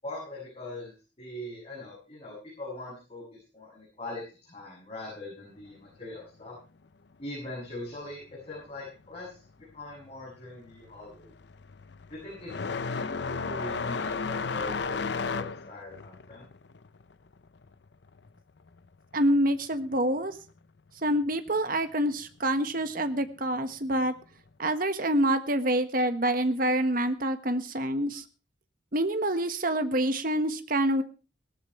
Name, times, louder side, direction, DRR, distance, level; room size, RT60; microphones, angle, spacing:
voice 1, 0.0-3.2 3.5-6.5 7.2-9.4 9.7-11.3 12.1-12.5 12.8-16.5, left 1 dB, 35° left, -4 dB, 7.6 m, -41 dB
sound 1, 9.9-10.2 10.5-18.9 19.1-20.2 21.2-21.3 22.1-22.2 23.9-24.1, left 4 dB, 65° left, 0.7 m, -34 dB
voice 2, 19.1-20.3 21.0-24.1 24.6-28.2 28.9-31.0, right 1 dB, 50° right, 9 dB, 1.5 m, -26 dB
18.5 x 13.5 x 3.3 m, 0.34 s
head